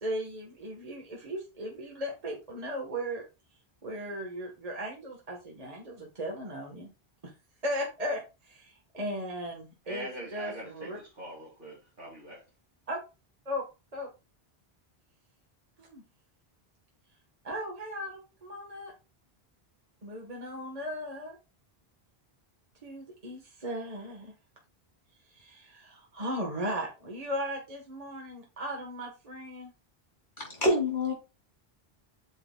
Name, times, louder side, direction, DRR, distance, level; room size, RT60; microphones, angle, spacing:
voice 1, 0.0-3.2 3.8-6.9 7.2-7.3 7.6-11.0 12.9-13.0 13.4-13.6 13.9-14.1 15.8-16.0 17.4-18.9 20.0-21.4 22.8-24.3 25.3-29.7, equal, 40° right, 1.4 m, -37 dB
voice 2, 9.8-12.4, right 1 dB, 55° right, 2.3 m, -42 dB
voice 3, 30.4-31.1, left 1 dB, 50° left, 3.2 m, -26 dB
8.8 x 6.3 x 2.3 m
omnidirectional pair, 1.0 m